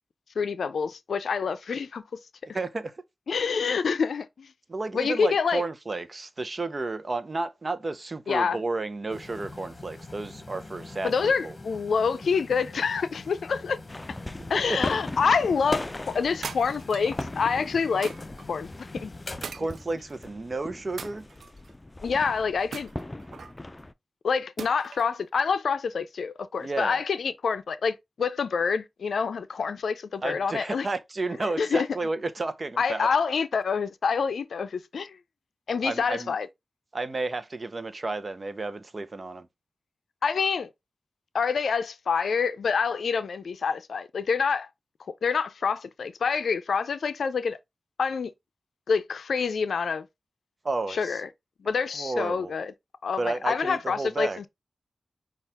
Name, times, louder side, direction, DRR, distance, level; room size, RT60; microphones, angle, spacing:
voice 1, 0.4-2.0 3.3-4.5 4.9-5.6 8.3-8.6 11.0-13.8 14.5-18.1 18.5-18.7 18.9-19.1 22.0-22.9 24.2-30.9 31.4-31.9 32.8-35.2 35.7-36.5 40.2-40.7 41.3-44.7 45.2-47.6 48.0-48.3 48.9-50.1 50.9-51.3 51.6-52.7 53.0-54.5, left 5 dB, 85° left, 0.4 m, -27 dB
voice 2, 2.5-2.9 4.7-11.5 14.7-14.8 19.5-21.3 26.6-27.0 30.2-33.1 35.8-36.3 36.9-39.5 50.6-51.2 51.9-52.5 53.2-54.5, right 3 dB, 50° right, 0.7 m, -32 dB
sound 1, 9.1-19.5, left 3 dB, 45° left, 0.9 m, -44 dB
sound 2, 13.9-23.9, left 1 dB, 25° left, 0.5 m, -38 dB
sound 3, 16.4-17.2 18.0-18.5 19.4-20.3 21.0-21.7 22.7-23.6 24.6-25.1, right 5 dB, 85° right, 0.3 m, -40 dB
5.6 x 2.4 x 3.4 m
cardioid pair, 40°, 0 cm